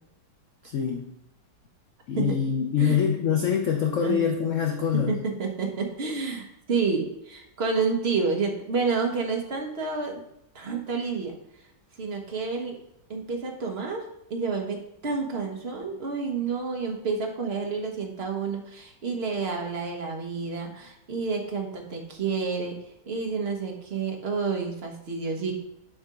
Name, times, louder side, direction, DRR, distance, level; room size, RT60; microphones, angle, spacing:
voice 1, 0.6-1.1 2.1-5.1, left 8 dB, 70° left, 3 dB, 0.7 m, -25 dB
voice 2, 4.9-10.2 10.5-11.4 12.0-12.8 13.1-14.0 14.3-22.8 23.1-25.6, right 4 dB, 40° right, 1 dB, 1.1 m, -29 dB
7.4 x 3.5 x 5.1 m, 0.81 s
omnidirectional pair, 2.0 m